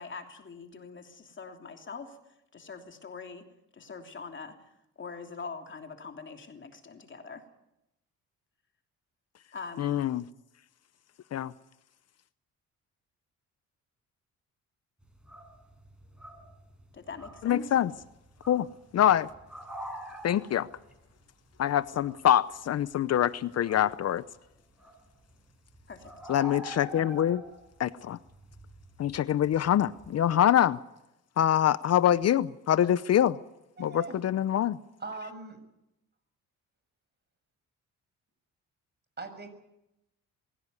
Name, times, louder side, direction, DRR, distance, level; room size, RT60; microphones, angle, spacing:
voice 1, 0.0-2.2 2.5-3.4 3.7-4.7 5.0-7.4 9.5-10.0 16.9-17.7 25.9-26.1, left 5 dB, 40° left, 4 dB, 3.1 m, -43 dB
voice 2, 9.8-10.2 11.3-11.5 17.4-17.9 18.5-18.7 18.9-19.3 20.2-20.7 21.6-24.2 26.3-27.4 27.8-28.2 29.0-30.8 31.4-33.4 33.8-34.8, left 10 dB, 55° left, 16 dB, 0.7 m, -25 dB
sound 1, 15.0-24.4 24.7-30.2, right 1 dB, 5° right, 7.2 m, -46 dB
voice 3, 33.8-34.2 35.0-35.6 39.2-39.5, right 3 dB, 35° right, 9 dB, 6.7 m, -40 dB
23.0 x 16.5 x 9.7 m, 0.89 s
cardioid pair, 90°, 30 cm